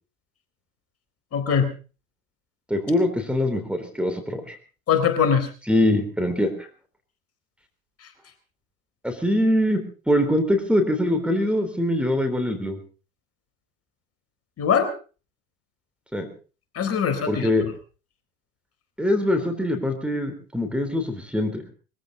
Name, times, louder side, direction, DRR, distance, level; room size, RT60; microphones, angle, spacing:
voice 1, 1.3-1.7 4.9-5.5 14.6-14.9 16.7-17.5, left 7 dB, 35° left, 8 dB, 4.0 m, -21 dB
voice 2, 2.7-4.6 5.7-6.7 9.0-12.8 16.1-16.3 17.3-17.7 19.0-21.6, left 1 dB, 5° right, 6 dB, 3.7 m, -23 dB
22.5 x 15.5 x 4.0 m, 0.36 s
hypercardioid pair, 90°, 43 cm